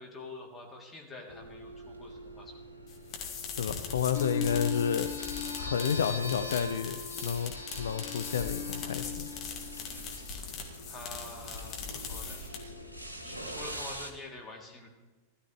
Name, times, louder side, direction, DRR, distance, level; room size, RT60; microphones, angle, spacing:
voice 1, 0.0-2.5 5.6-5.7 9.9-10.4 10.8-12.4 13.2-14.9, left 2 dB, 15° left, -2 dB, 3.2 m, -47 dB
sound 1, 1.3-14.1, right 1 dB, 85° right, 1.4 m, -46 dB
sound 2, 2.9-12.8, left 6 dB, 35° left, 2.4 m, -41 dB
voice 2, 3.5-5.1 5.6-7.5 7.8-9.3, left 7 dB, 65° left, 12 dB, 0.5 m, -30 dB
sound 3, 4.1-10.2, left 5 dB, 85° left, 1.4 m, -39 dB
16.5 x 13.0 x 3.3 m, 1.3 s
figure-of-eight pair, 90°, 0 cm